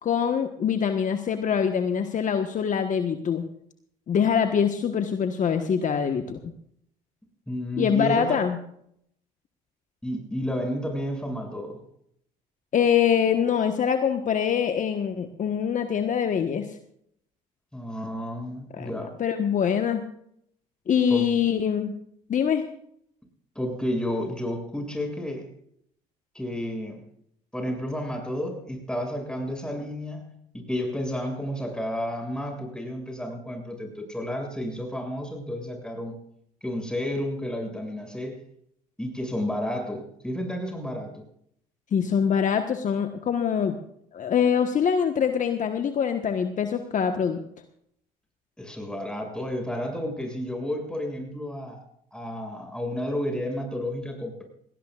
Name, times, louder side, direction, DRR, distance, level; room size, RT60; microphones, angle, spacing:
voice 1, 0.0-3.4 4.1-6.4 7.8-8.6 12.7-16.7 18.7-20.0 20.9-21.9 22.3-22.6 41.9-43.8 44.1-47.4, left 7 dB, 50° left, 6 dB, 1.4 m, -24 dB
voice 2, 7.5-8.4 10.0-11.8 17.7-19.1 21.1-21.3 23.6-25.5 26.3-27.0 27.5-30.3 30.7-36.2 36.6-38.4 39.0-41.2 48.6-51.8 52.1-54.4, equal, 5° left, 3 dB, 7.0 m, -31 dB
18.5 x 18.5 x 2.5 m, 0.68 s
supercardioid pair, 70°, 17 cm